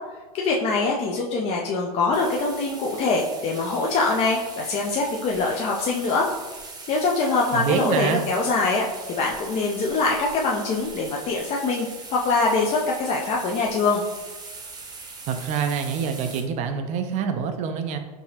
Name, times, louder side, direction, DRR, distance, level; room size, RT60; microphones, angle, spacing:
voice 1, 0.3-6.3 6.9-14.0, left 3 dB, 30° left, -2 dB, 0.5 m, -23 dB
sound 1, 2.1-16.4, right 3 dB, 20° right, 0.8 m, -40 dB
voice 2, 7.5-8.2 15.3-18.0, right 6 dB, 35° right, 7 dB, 0.4 m, -26 dB
4.6 x 2.8 x 2.8 m, 1.2 s
hypercardioid pair, 105°, 20 cm